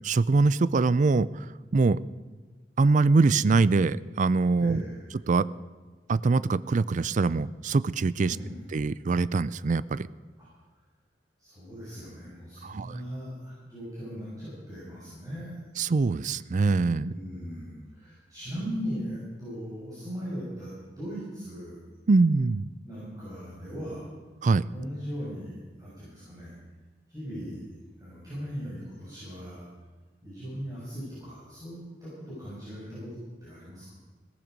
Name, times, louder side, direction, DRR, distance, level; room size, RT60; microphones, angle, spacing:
voice 1, 0.0-1.5 1.7-2.0 2.8-4.8 5.3-5.5 6.1-8.4 8.7-10.1 12.6-13.0 15.8-17.1 22.1-22.6 24.4-24.7, right 3 dB, 45° right, 19 dB, 0.4 m, -23 dB
voice 2, 4.6-5.1 8.2-8.6 10.4-10.5 11.4-15.6 17.0-21.8 22.8-24.1 24.7-26.6 27.1-27.6 28.0-29.7 30.2-33.9, equal, 20° right, -9 dB, 6.4 m, -38 dB
17.0 x 15.0 x 5.2 m, 1.4 s
head